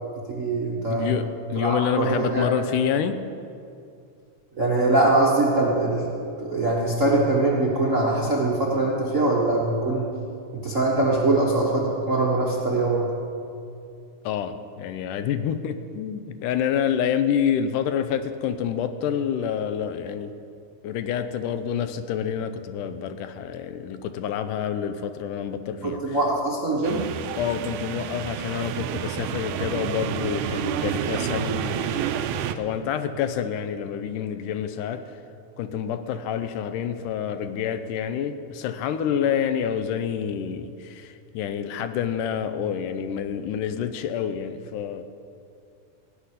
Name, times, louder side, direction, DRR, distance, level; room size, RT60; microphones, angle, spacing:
voice 1, 0.3-1.1 1.5-2.5 4.6-6.1 6.4-10.1 10.5-13.1 25.8-27.0, right 2 dB, 50° right, -4 dB, 0.9 m, -22 dB
voice 2, 0.9-3.2 14.2-20.3 20.8-26.2 27.4-32.1 32.6-35.0 35.6-45.0, left 8 dB, 90° left, 10 dB, 2.3 m, -28 dB
sound 1, 26.8-32.5, right 9 dB, 85° right, 2.1 m, -29 dB
17.0 x 5.9 x 9.8 m, 2.5 s
omnidirectional pair, 3.7 m